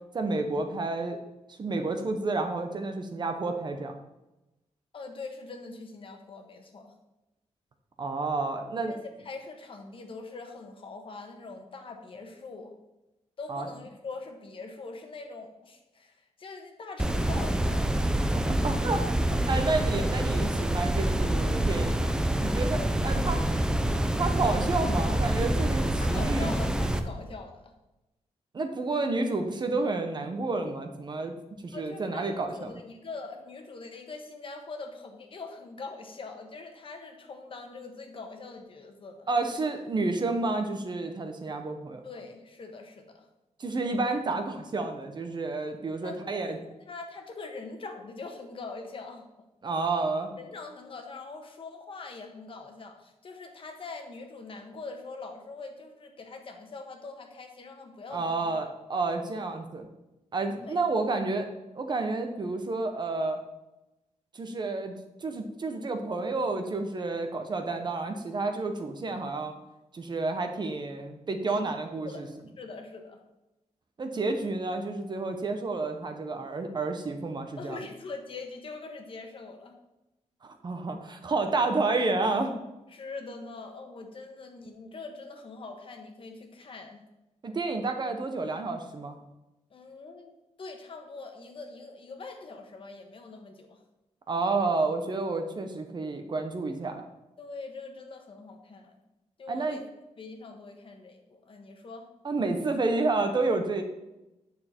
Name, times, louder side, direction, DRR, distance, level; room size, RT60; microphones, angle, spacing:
voice 1, 0.1-1.2 1.6-3.9 8.0-8.9 13.5-13.7 18.6-22.8 23.0-23.4 24.2-26.5 28.5-31.3 31.6-32.7 39.3-42.0 43.6-46.6 49.6-50.3 58.1-59.9 60.3-61.5 61.7-63.4 64.3-64.9 65.2-69.5 69.9-72.3 74.0-77.8 80.4-82.5 87.4-89.2 94.3-97.1 99.5-99.8 102.2-103.8, right 3 dB, 35° right, 5 dB, 0.9 m, -30 dB
voice 2, 4.9-6.9 8.9-12.7 13.4-18.1 19.5-19.8 22.7-24.3 26.0-27.7 31.7-39.3 42.0-43.3 46.0-49.2 50.4-58.5 59.4-59.5 60.6-60.8 71.5-72.3 72.6-73.2 77.6-79.7 82.9-87.0 89.7-90.3 90.6-93.8 97.4-98.9 99.4-99.8 100.2-102.1, left 3 dB, 45° left, 4 dB, 1.3 m, -43 dB
sound 1, 17.0-27.0, right 1 dB, 5° right, 0.5 m, -26 dB
9.3 x 6.7 x 4.5 m, 0.95 s
wide cardioid pair, 160°, 12 cm